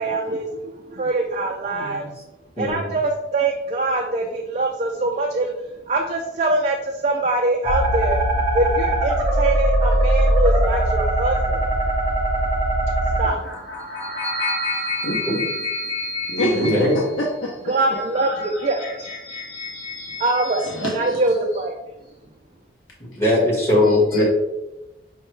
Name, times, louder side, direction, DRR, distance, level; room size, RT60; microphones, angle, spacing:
voice 1, 0.0-2.1 2.6-5.5 5.8-8.2 8.5-11.6 13.2-13.4 17.7-19.1 20.2-21.8, right 2 dB, 35° right, 1 dB, 0.3 m, -23 dB
voice 2, 1.7-2.1 2.6-3.0 15.3-15.4 16.5-17.0 23.0-24.2, left 1 dB, 15° left, -6 dB, 1.4 m, -20 dB
sound 1, 7.6-13.3, right 1 dB, 15° right, 0.9 m, -20 dB
voice 3, 13.4-21.2 24.1-24.2, left 1 dB, 80° left, -3 dB, 0.7 m, -27 dB
5.4 x 2.2 x 3.1 m, 0.97 s
head